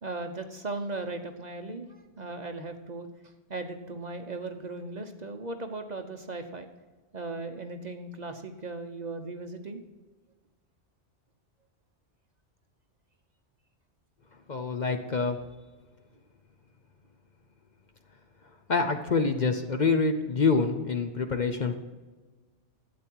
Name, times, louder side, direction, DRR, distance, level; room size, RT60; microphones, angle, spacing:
voice 1, 0.0-6.7 7.1-9.8, right 3 dB, 40° right, 6 dB, 0.9 m, -37 dB
voice 2, 14.5-15.4 18.7-21.7, left 4 dB, 45° left, 6 dB, 0.8 m, -26 dB
12.5 x 8.4 x 4.5 m, 1.3 s
omnidirectional pair, 1.2 m